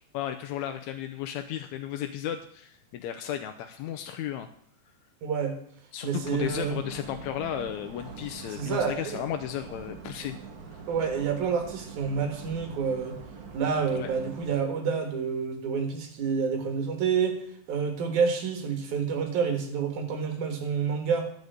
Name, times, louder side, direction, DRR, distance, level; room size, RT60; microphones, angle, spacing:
voice 1, 0.1-4.5 5.9-10.4 13.9-14.1, left 10 dB, 80° left, 6 dB, 1.8 m, -34 dB
voice 2, 5.2-5.6 6.0-6.8 8.5-9.2 10.9-13.2 13.5-17.4 17.7-21.3, right 6 dB, 85° right, 6 dB, 3.0 m, -28 dB
sound 1, 6.2-14.6, right 5 dB, 55° right, 1.0 m, -44 dB
11.0 x 5.2 x 8.0 m, 0.65 s
omnidirectional pair, 3.4 m